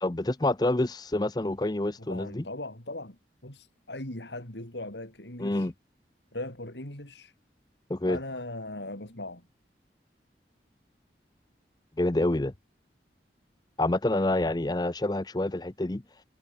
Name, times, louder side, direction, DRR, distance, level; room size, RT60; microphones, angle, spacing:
voice 1, 0.0-2.4 5.4-5.7 7.9-8.2 12.0-12.5 13.8-16.0, left 1 dB, 25° left, 0.6 m, -27 dB
voice 2, 2.0-5.7 6.3-7.3 8.0-9.5, left 2 dB, 80° left, 6.4 m, -39 dB
head